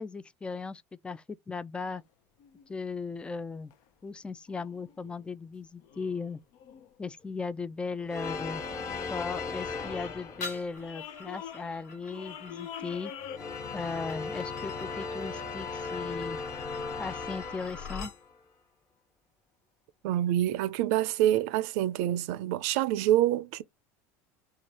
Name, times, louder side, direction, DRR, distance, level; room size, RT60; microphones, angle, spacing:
voice 1, 0.0-2.0 2.7-3.7 4.0-6.4 7.0-8.6 9.1-13.1 13.7-16.4 17.0-18.1, left 4 dB, 10° left, 0.4 m, -37 dB
sound 1, 2.0-2.1 2.4-2.9 3.7-3.9 4.5-5.3 5.8-7.1 7.9-8.3 8.9-9.5 9.8-13.4, left 9 dB, 65° left, 0.7 m, -46 dB
sound 2, 8.1-10.9 13.2-18.4, left 4 dB, 35° left, 1.3 m, -37 dB
sound 3, 10.4-18.2, left 4 dB, 90° left, 1.5 m, -45 dB
voice 2, 20.0-23.6, right 13 dB, 75° right, 0.6 m, -26 dB
4.8 x 2.4 x 4.2 m
supercardioid pair, 105°, 8 cm